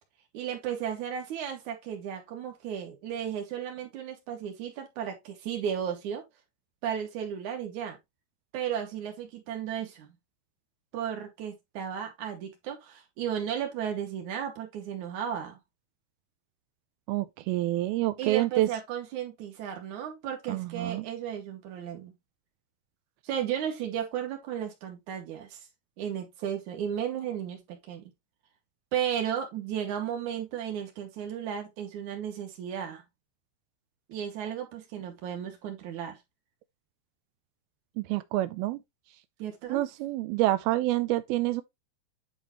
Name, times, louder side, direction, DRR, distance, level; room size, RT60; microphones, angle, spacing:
voice 1, 0.3-6.2 6.8-8.0 8.5-10.1 10.9-15.6 18.2-22.1 23.2-25.6 26.0-28.1 28.9-33.0 34.1-36.2 39.4-39.8, right 9 dB, 50° right, 2.9 m, -34 dB
voice 2, 17.1-18.7 20.5-21.1 38.0-38.8 39.7-41.6, right 16 dB, 90° right, 2.1 m, -27 dB
9.9 x 5.3 x 3.1 m
omnidirectional pair, 5.2 m